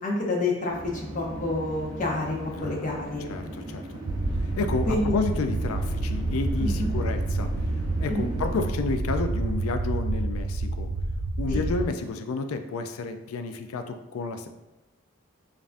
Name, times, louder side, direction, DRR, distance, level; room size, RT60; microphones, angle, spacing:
voice 1, 0.0-2.4 2.6-3.3 4.9-5.1 6.6-6.9 8.1-8.3 11.5-11.7, left 2 dB, 35° left, -2 dB, 0.7 m, -28 dB
sound 1, 0.7-8.6, right 1 dB, 20° right, 0.7 m, -38 dB
voice 2, 2.5-3.9 4.4-7.7 8.0-10.9 11.4-14.5, left 4 dB, 85° left, 8 dB, 0.4 m, -31 dB
sound 2, 4.0-11.9, right 2 dB, 90° right, 0.4 m, -28 dB
5.1 x 2.5 x 2.5 m, 1.0 s
head